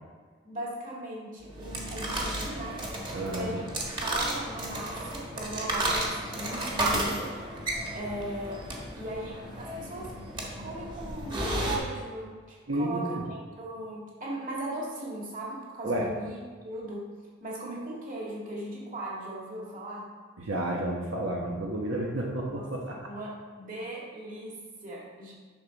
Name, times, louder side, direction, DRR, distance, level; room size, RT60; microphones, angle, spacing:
voice 1, 0.4-2.8 3.3-3.7 4.0-7.3 7.9-8.7 8.9-10.1 10.6-16.4 16.6-17.1 17.4-20.1 22.5-22.7 23.1-25.3, right 1 dB, 40° right, -4 dB, 2.2 m, -38 dB
sound 1, 1.4-11.8, right 1 dB, 25° right, 1.4 m, -33 dB
voice 2, 3.1-3.6 7.9-8.0 12.7-13.2 15.8-16.1 20.4-23.1, right 1 dB, 90° right, -1 dB, 1.1 m, -31 dB
10.5 x 6.2 x 4.1 m, 1.5 s
head